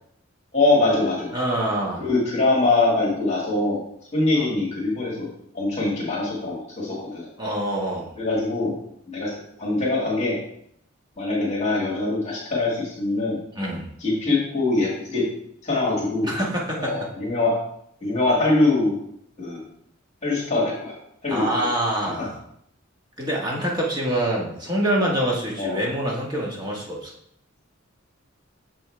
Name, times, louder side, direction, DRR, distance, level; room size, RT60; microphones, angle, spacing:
voice 1, 0.5-1.3 2.0-3.8 4.1-5.3 5.5-7.3 8.2-8.8 9.1-9.3 9.6-10.4 11.2-13.4 14.0-15.2 15.6-16.3 16.8-17.5 18.0-18.9 19.4-19.6 20.2-21.0 21.2-21.7 22.2-22.3 25.6-25.8, left 2 dB, 35° left, -5 dB, 1.9 m, -23 dB
voice 2, 1.3-2.1 4.4-4.5 7.4-8.1 13.5-13.9 16.2-17.0 21.3-22.4 23.2-27.1, right 1 dB, 20° right, -3 dB, 1.4 m, -25 dB
7.0 x 5.5 x 3.3 m, 0.70 s
head